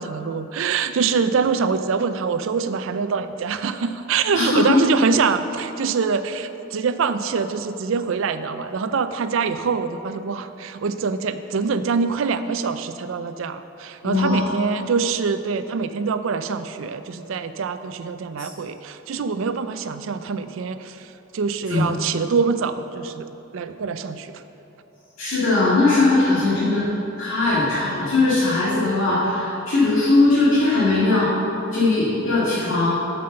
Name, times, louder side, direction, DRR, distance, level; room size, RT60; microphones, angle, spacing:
voice 1, 0.0-23.3 23.5-24.4, right 5 dB, 70° right, 11 dB, 0.4 m, -24 dB
voice 2, 4.3-4.8 14.0-14.4 18.4-18.5 21.7-21.8 25.2-26.9 27.2-31.3 31.7-32.9, left 2 dB, 70° left, -11 dB, 1.9 m, -19 dB
7.8 x 5.5 x 6.6 m, 2.9 s
head